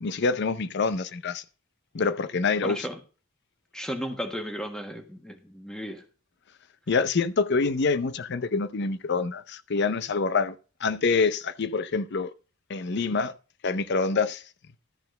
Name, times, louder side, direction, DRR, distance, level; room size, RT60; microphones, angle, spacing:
voice 1, 0.0-1.4 1.9-2.9 6.9-10.5 10.8-12.3 12.7-13.3 13.6-14.4, left 4 dB, 55° left, 0.6 m, -26 dB
voice 2, 2.6-3.0 3.7-6.0, equal, 5° left, 1.4 m, -34 dB
13.0 x 4.4 x 6.5 m
head